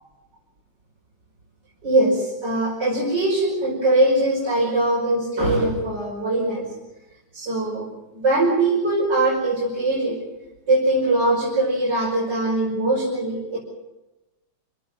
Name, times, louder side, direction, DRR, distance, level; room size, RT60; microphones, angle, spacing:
voice 1, 1.8-6.7 7.3-7.9 8.1-10.2 10.7-13.6, right 2 dB, 75° right, -5 dB, 5.9 m, -21 dB
26.5 x 18.0 x 7.6 m, 1.0 s
omnidirectional pair, 1.9 m